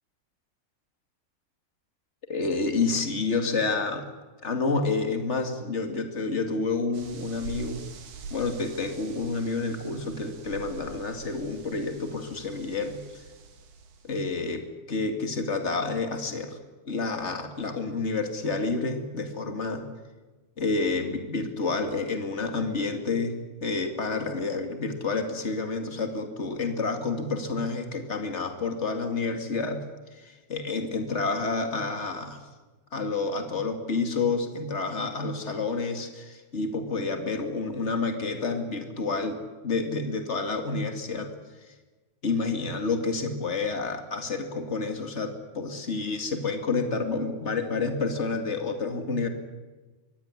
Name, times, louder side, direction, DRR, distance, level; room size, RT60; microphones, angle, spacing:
voice 1, 2.3-4.1 4.4-7.8 8.3-13.2 14.0-16.6 16.9-19.8 20.6-29.8 30.1-32.5 32.9-39.4 39.6-41.3 41.6-41.7 42.2-49.3, left 3 dB, 50° left, 6 dB, 0.8 m, -29 dB
sound 1, 6.9-14.4, right 5 dB, 65° right, 4.2 m, -45 dB
23.5 x 17.5 x 9.8 m, 1.2 s
omnidirectional pair, 5.0 m